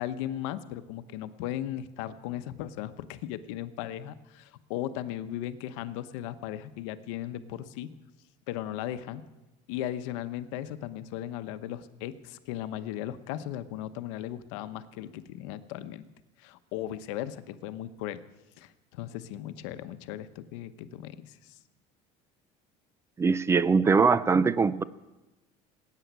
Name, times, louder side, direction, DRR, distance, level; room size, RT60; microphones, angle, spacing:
voice 1, 0.0-7.9 8.5-9.2 9.7-16.1 16.4-18.2 18.6-21.6, left 12 dB, 90° left, 11 dB, 1.0 m, -37 dB
voice 2, 23.2-24.8, right 5 dB, 20° right, 17 dB, 0.5 m, -22 dB
19.0 x 9.3 x 8.1 m, 1.1 s
cardioid pair, 130°, 15 cm